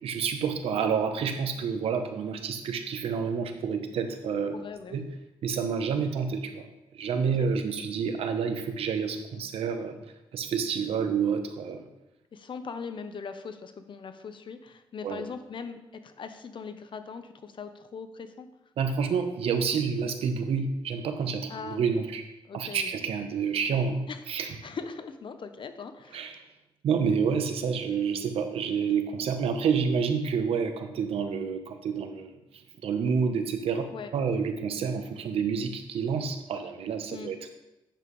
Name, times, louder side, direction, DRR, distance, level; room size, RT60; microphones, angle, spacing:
voice 1, 0.0-4.6 4.9-5.0 5.4-6.6 6.9-10.0 10.3-11.8 15.0-15.2 18.8-22.2 22.5-24.0 24.3-24.5 26.1-26.4 26.8-32.3 32.8-33.9 34.1-37.5, right 6 dB, 90° right, 7 dB, 0.8 m, -28 dB
voice 2, 4.5-5.0 7.2-7.5 12.3-18.5 21.5-21.8 22.5-22.9 24.1-26.3 33.9-34.1 37.1-37.3, left 5 dB, 60° left, 9 dB, 0.7 m, -40 dB
8.9 x 7.2 x 3.1 m, 0.92 s
cardioid pair, 90°, 10 cm